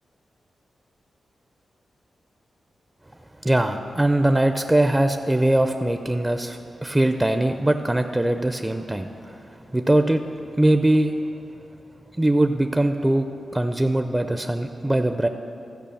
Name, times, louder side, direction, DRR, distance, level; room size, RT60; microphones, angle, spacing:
voice 1, 3.4-10.2 10.6-11.1 12.2-15.3, right 1 dB, 15° right, 7 dB, 0.4 m, -21 dB
13.0 x 5.2 x 7.0 m, 2.8 s
cardioid pair, 65°, 0 cm